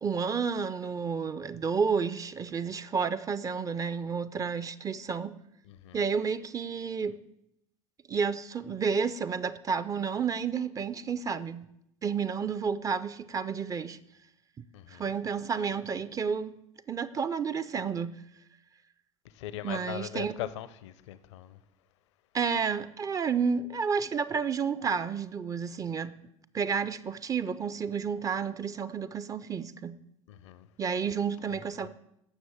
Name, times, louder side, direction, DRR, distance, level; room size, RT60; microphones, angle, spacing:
voice 1, 0.0-5.3 5.9-7.2 8.1-11.6 12.0-14.0 14.6-14.7 14.9-16.5 16.9-18.2 19.6-20.3 22.3-26.1 26.5-30.0 30.8-31.9, right 6 dB, 20° right, 0.4 m, -31 dB
voice 2, 5.7-6.0 14.7-15.1 19.3-21.6 30.3-30.7 31.5-31.9, left 13 dB, 65° left, 0.6 m, -40 dB
16.0 x 6.3 x 3.5 m
figure-of-eight pair, 70°, 16 cm